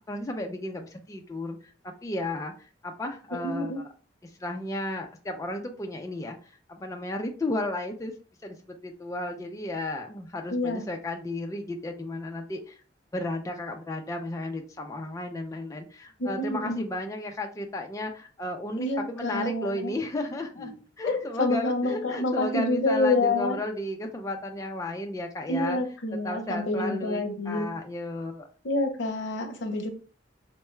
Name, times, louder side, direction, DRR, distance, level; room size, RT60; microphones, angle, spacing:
voice 1, 0.1-1.7 2.0-3.7 4.2-8.1 8.4-8.6 8.8-12.8 13.1-20.7 21.0-25.8 26.2-28.5, left 1 dB, 20° left, 2 dB, 0.4 m, -34 dB
voice 2, 3.4-3.8 10.5-10.9 16.2-16.8 18.8-20.0 20.6-20.7 21.0-23.6 25.5-27.7 28.6-29.9, left 2 dB, 70° left, 4 dB, 0.7 m, -27 dB
4.4 x 2.2 x 3.1 m, 0.40 s
head